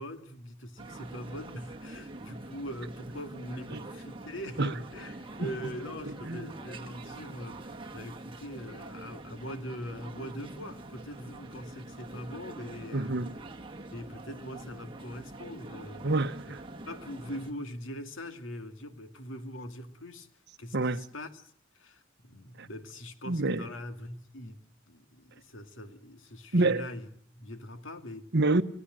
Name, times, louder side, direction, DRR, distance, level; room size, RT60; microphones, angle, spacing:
voice 1, 0.0-13.3 13.9-16.1 16.9-20.3 20.6-27.1 27.3-28.3, equal, 75° left, 2.4 m, -42 dB
sound 1, 0.8-17.5, right 2 dB, 25° right, 2.1 m, -45 dB
voice 2, 12.9-13.3 16.0-16.6 20.7-21.0 22.6-22.7 23.3-23.6 26.5-26.8 28.3-28.6, right 2 dB, 60° right, 1.1 m, -27 dB
30.0 x 17.0 x 7.7 m
head